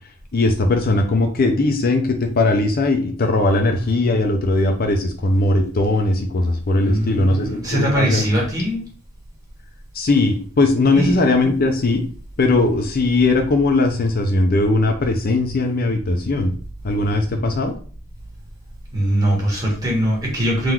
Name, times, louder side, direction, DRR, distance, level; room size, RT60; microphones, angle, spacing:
voice 1, 0.3-8.2 9.9-12.0 12.4-16.5 16.8-17.7, left 2 dB, 45° left, 4 dB, 0.5 m, -19 dB
voice 2, 6.8-8.8 10.9-11.2 18.9-20.7, right 1 dB, 15° right, -4 dB, 1.5 m, -21 dB
3.8 x 2.6 x 4.4 m, 0.42 s
head